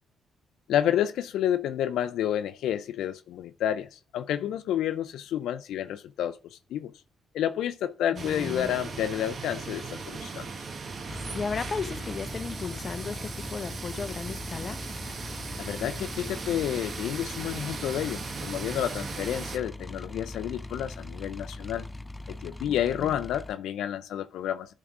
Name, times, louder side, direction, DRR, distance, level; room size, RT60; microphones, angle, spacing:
voice 1, 0.7-6.9 7.3-10.5 15.6-21.9 22.3-24.7, left 10 dB, 80° left, 0.5 m, -30 dB
voice 2, 8.1-8.7 11.3-14.8 22.7-23.2, left 5 dB, 40° left, 0.8 m, -35 dB
sound 1, 8.2-19.6, right 4 dB, 45° right, 1.2 m, -38 dB
sound 2, 11.1-23.5, left 2 dB, 10° left, 0.4 m, -40 dB
11.0 x 3.7 x 5.9 m
cardioid pair, 90°, 0 cm